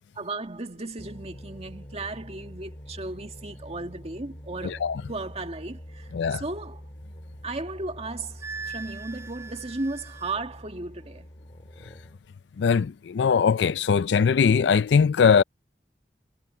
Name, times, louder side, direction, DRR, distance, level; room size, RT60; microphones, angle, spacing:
voice 1, 0.2-4.8 5.1-6.8 7.4-11.3, right 2 dB, 35° right, 1.9 m, -35 dB
sound 1, 1.0-12.3, equal, 35° left, 3.6 m, -45 dB
voice 2, 4.6-5.0 6.1-6.4 12.6-15.4, left 6 dB, 80° left, 0.4 m, -21 dB
Wind instrument woodwind instrument, 8.4-10.4, right 5 dB, 15° right, 2.3 m, -40 dB
head